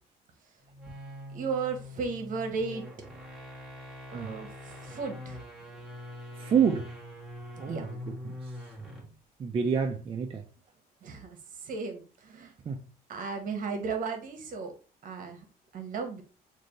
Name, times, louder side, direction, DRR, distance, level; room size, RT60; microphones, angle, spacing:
sound 1, 0.7-9.2, left 1 dB, ahead, 1.2 m, -43 dB
voice 1, 1.3-2.9 4.1-5.4 7.7-7.9 11.0-12.5 13.1-14.7 15.0-15.5 15.7-16.2, right 5 dB, 55° right, 1.0 m, -35 dB
voice 2, 6.3-6.9 7.6-8.6 9.4-10.4 12.6-12.9, right 7 dB, 30° right, 0.4 m, -29 dB
3.4 x 2.6 x 3.9 m
cardioid pair, 110°, 17 cm